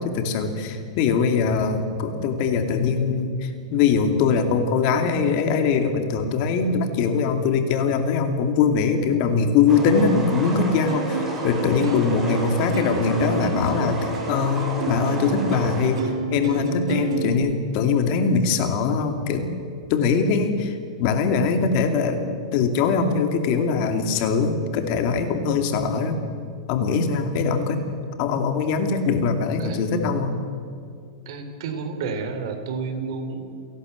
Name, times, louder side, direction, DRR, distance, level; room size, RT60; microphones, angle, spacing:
voice 1, 0.0-19.5 19.9-22.2 22.5-26.2 26.7-27.8 28.2-30.3, left 5 dB, 45° left, 7 dB, 2.5 m, -22 dB
sound 1, 9.7-16.1, right 1 dB, 15° right, 4.8 m, -32 dB
Plucked string instrument, 10.0-17.3, right 5 dB, 75° right, 2.5 m, -31 dB
voice 2, 31.2-33.7, right 4 dB, 60° right, 7 dB, 3.3 m, -31 dB
29.5 x 11.5 x 8.1 m, 2.3 s
supercardioid pair, 150°, 3 cm